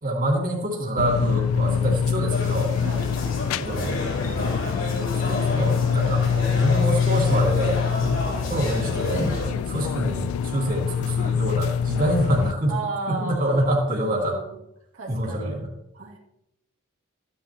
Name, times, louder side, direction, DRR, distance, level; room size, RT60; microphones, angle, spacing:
voice 1, 0.0-2.7 3.6-4.6 5.1-8.2 8.5-9.3 9.7-12.8 13.1-14.4 15.1-15.7, right 1 dB, 40° right, -3 dB, 2.5 m, -26 dB
sound 1, 1.0-12.5, left 7 dB, 80° left, 0.3 m, -25 dB
sound 2, 2.3-9.5, left 1 dB, 65° left, 4.1 m, -30 dB
voice 2, 12.7-14.5 14.9-15.5 15.9-16.2, right 3 dB, 85° right, -2 dB, 2.3 m, -34 dB
15.0 x 9.7 x 2.9 m, 0.85 s
head